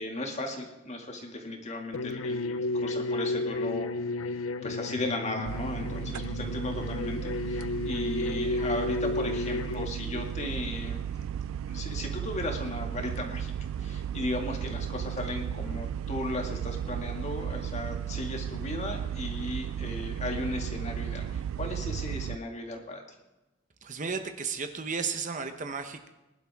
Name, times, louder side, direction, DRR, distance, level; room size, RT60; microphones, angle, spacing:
voice 1, 0.0-3.9 4.6-11.0 11.7-13.5 13.8-23.0, left 1 dB, 35° left, 2 dB, 2.1 m, -36 dB
sound 1, 1.9-9.9, left 2 dB, 90° left, 0.6 m, -32 dB
sound 2, 5.5-22.4, right 9 dB, 85° right, 0.3 m, -35 dB
voice 2, 23.8-26.1, right 5 dB, 40° right, 7 dB, 0.9 m, -34 dB
20.5 x 11.5 x 3.6 m, 1.0 s
head